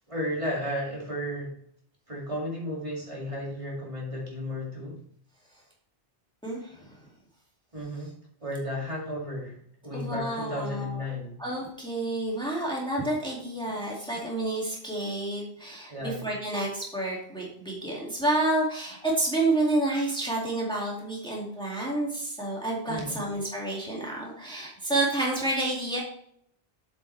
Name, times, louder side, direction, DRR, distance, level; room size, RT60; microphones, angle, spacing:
voice 1, 0.1-1.6 2.1-5.0 7.7-8.1 8.4-9.6 9.8-11.4 15.9-16.2 22.9-23.2, left 1 dB, 30° right, -4 dB, 2.5 m, -33 dB
voice 2, 6.4-7.0 9.9-11.0 11.4-26.0, right 2 dB, 5° left, -4 dB, 2.2 m, -29 dB
8.0 x 7.4 x 3.3 m, 0.65 s
omnidirectional pair, 1.1 m